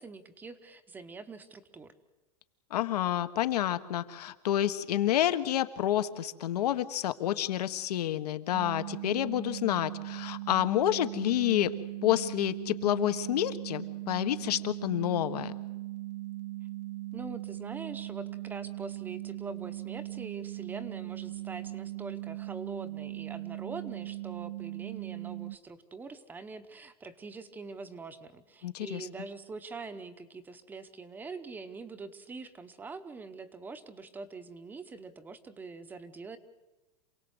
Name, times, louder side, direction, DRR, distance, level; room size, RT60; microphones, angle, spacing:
voice 1, 0.0-1.9 17.1-36.4, right 4 dB, 10° right, 12 dB, 0.9 m, -44 dB
voice 2, 2.7-11.7 12.0-15.5 28.6-29.1, left 12 dB, 75° left, 11 dB, 1.5 m, -29 dB
sound 1, 8.5-25.6, right 17 dB, 80° right, 1.0 m, -39 dB
27.5 x 18.5 x 8.1 m, 1.1 s
supercardioid pair, 170°, 20 cm